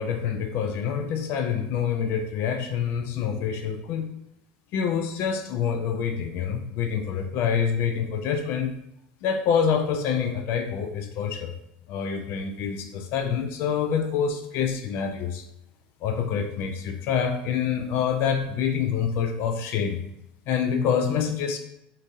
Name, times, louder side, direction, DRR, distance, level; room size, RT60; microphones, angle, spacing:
voice 1, 0.0-4.1 4.7-8.8 9.2-11.5 11.9-15.5 16.0-20.0 20.5-21.6, left 7 dB, 55° left, 5 dB, 0.4 m, -26 dB
5.1 x 2.7 x 2.6 m, 0.83 s
hypercardioid pair, 85°, 5 cm